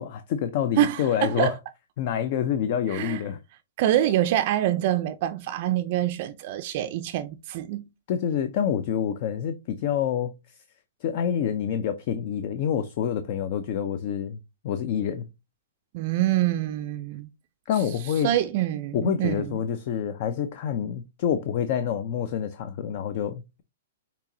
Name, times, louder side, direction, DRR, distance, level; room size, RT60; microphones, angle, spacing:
voice 1, 0.0-1.5 2.0-3.4 8.1-10.3 11.0-14.4 14.6-15.3 17.7-18.3 18.9-23.6, left 8 dB, 40° left, 0.4 m, -27 dB
voice 2, 0.8-1.5 2.9-3.2 3.8-7.8 15.9-17.3 18.2-19.6, right 13 dB, 40° right, 0.4 m, -25 dB
6.7 x 2.8 x 2.6 m
hypercardioid pair, 155°, 0 cm